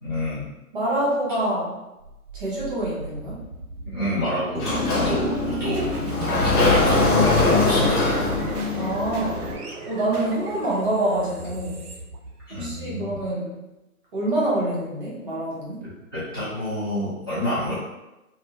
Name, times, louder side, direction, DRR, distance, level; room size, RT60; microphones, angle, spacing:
voice 1, 0.0-0.5 3.8-5.9 6.2-8.2 12.5-13.2 16.1-17.7, equal, 15° left, -16 dB, 0.5 m, -28 dB
voice 2, 0.7-1.8 2.3-3.4 8.7-9.4 9.9-11.8 12.5-13.6 14.1-15.8, right 1 dB, 35° right, -6 dB, 0.8 m, -26 dB
sound 1, 2.0-13.1, right 3 dB, 85° right, 0.6 m, -35 dB
Sliding door, 4.5-9.5, left 3 dB, 85° left, 0.7 m, -22 dB
2.6 x 2.1 x 2.7 m, 0.99 s
figure-of-eight pair, 140°, 44 cm